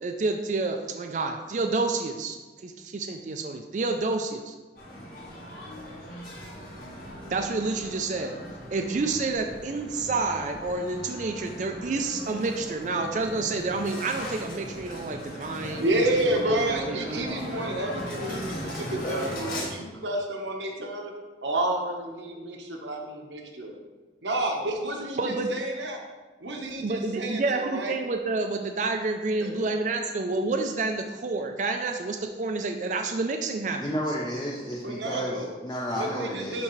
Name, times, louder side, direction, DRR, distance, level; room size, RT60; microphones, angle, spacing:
voice 1, 0.0-4.5 7.3-8.4 8.7-15.9 16.1-17.4 25.2-25.5 26.8-33.8, right 3 dB, 45° right, 4 dB, 0.4 m, -29 dB
sound 1, 4.8-19.6, equal, 50° left, 2.1 m, -38 dB
voice 2, 15.8-21.1 21.4-23.7 24.2-26.0 26.4-27.9 29.4-29.7 34.8-35.5 35.9-36.6, right 1 dB, 85° right, 1 dB, 1.1 m, -30 dB
voice 3, 33.8-36.6, equal, 20° left, -3 dB, 0.6 m, -32 dB
11.0 x 3.7 x 3.1 m, 1.2 s
head